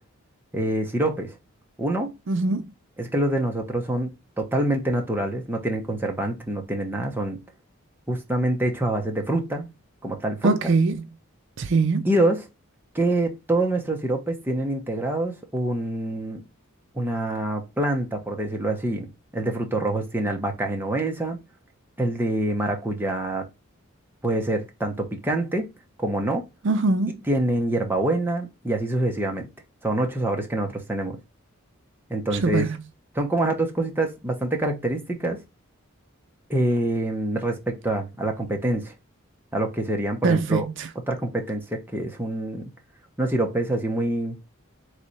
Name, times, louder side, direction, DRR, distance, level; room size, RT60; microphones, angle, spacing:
voice 1, 0.5-1.4 1.8-2.1 3.0-4.1 4.4-7.4 8.1-9.7 10.0-10.7 12.0-12.5 12.9-16.4 16.9-21.4 22.0-23.4 24.2-25.7 26.0-26.4 27.3-29.5 29.8-31.2 32.1-32.7 33.1-35.4 36.5-38.9 39.5-40.7 41.1-42.7 43.2-44.4, right 1 dB, 10° right, 0.8 m, -26 dB
voice 2, 2.3-2.6 10.4-10.9 11.6-12.1 26.6-27.2 32.4-32.7 40.2-40.9, right 3 dB, 60° right, 0.5 m, -22 dB
3.7 x 3.3 x 4.0 m
head